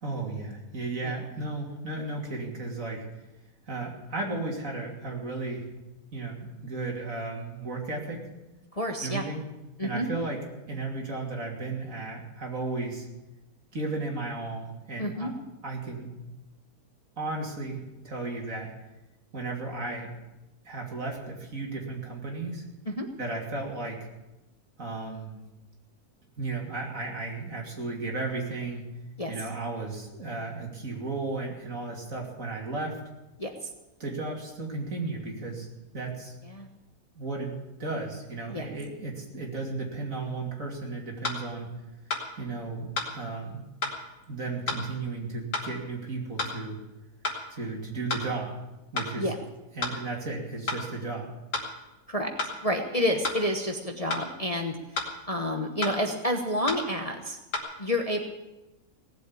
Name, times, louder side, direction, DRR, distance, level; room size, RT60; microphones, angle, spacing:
voice 1, 0.0-3.0 3.7-5.7 6.1-8.2 9.0-9.4 9.8-10.4 10.7-13.1 13.7-15.4 15.6-16.1 17.2-18.7 19.3-20.1 20.6-22.6 23.2-24.0 24.8-25.4 26.4-28.9 29.3-33.0 34.0-35.7 35.9-36.3 37.2-41.7 42.4-43.6 44.3-46.8 47.5-48.5 48.9-49.2 49.7-51.3, right 3 dB, 55° right, -1 dB, 3.3 m, -34 dB
voice 2, 8.7-9.2 9.8-10.1 15.0-15.3 22.9-23.1 29.2-29.3 33.4-33.7 36.4-36.7 38.5-38.7 49.1-49.4 52.1-52.3 52.6-57.4 57.8-58.2, left 1 dB, 25° left, 3 dB, 1.1 m, -29 dB
sound 1, 41.2-41.4 42.1-42.3 43.0-43.1 43.8-44.0 44.7-44.8 45.5-45.7 46.4-46.6 47.2-47.4 48.1-48.3 49.0-49.1 49.8-50.0 50.7-50.8 51.5-51.7 52.4-52.5 53.2-53.4 54.1-54.3 54.9-55.1 55.8-56.0 56.7-56.8 57.5-57.6, left 3 dB, 90° left, 3.0 m, -30 dB
18.0 x 7.8 x 8.6 m, 1.0 s
omnidirectional pair, 1.7 m